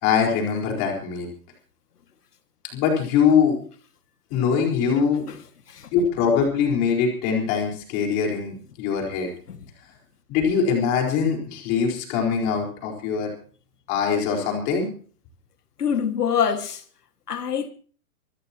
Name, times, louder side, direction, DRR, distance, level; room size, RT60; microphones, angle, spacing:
voice 1, 0.0-1.3 2.7-3.6 4.3-5.2 5.9-9.3 10.3-13.3 13.9-14.9, left 6 dB, 25° left, 4.5 m, -22 dB
voice 2, 15.8-16.8 17.3-17.7, left 7 dB, 90° left, 2.2 m, -25 dB
25.5 x 13.5 x 3.0 m
hypercardioid pair, 170°, 45 cm